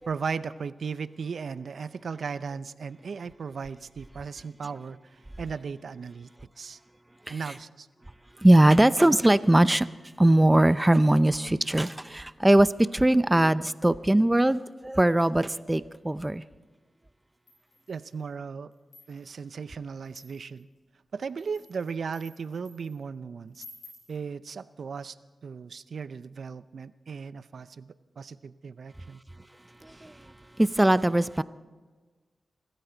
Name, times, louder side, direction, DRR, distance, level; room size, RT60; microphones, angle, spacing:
voice 1, 0.0-5.0 5.4-6.3 6.6-6.8 7.3-7.9 17.9-18.7 19.1-20.7 21.1-23.6 24.1-25.2 25.4-29.2, right 5 dB, 75° right, 15 dB, 0.5 m, -36 dB
voice 2, 8.4-9.9 10.2-16.4 29.8-30.3 30.6-31.4, right 1 dB, 15° right, 15 dB, 0.6 m, -21 dB
sound 1, 17.5-18.2 18.7-19.4 20.0-20.6 21.2-22.9 23.5-24.1, left 2 dB, 85° left, 4.8 m, -52 dB
25.0 x 13.0 x 4.0 m, 1.3 s
cardioid pair, 65°, 0 cm